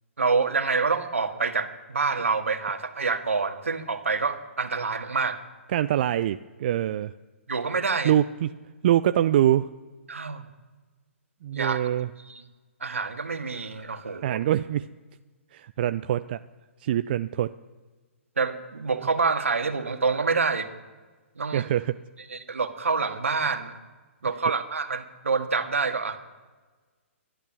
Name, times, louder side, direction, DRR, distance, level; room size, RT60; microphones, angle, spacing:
voice 1, 0.2-5.4 7.5-8.1 10.1-10.4 11.5-11.8 12.3-12.4 12.8-14.4 18.4-20.7 21.4-21.7 22.3-23.8 24.2-26.2, right 4 dB, 75° right, 6 dB, 1.8 m, -27 dB
voice 2, 5.7-7.1 8.0-8.5 8.8-9.7 11.4-12.1 14.2-14.9 15.5-16.4 16.8-17.5 21.5-22.0, right 11 dB, 45° right, 12 dB, 0.4 m, -24 dB
20.5 x 11.5 x 6.2 m, 1.3 s
figure-of-eight pair, 125°, 7 cm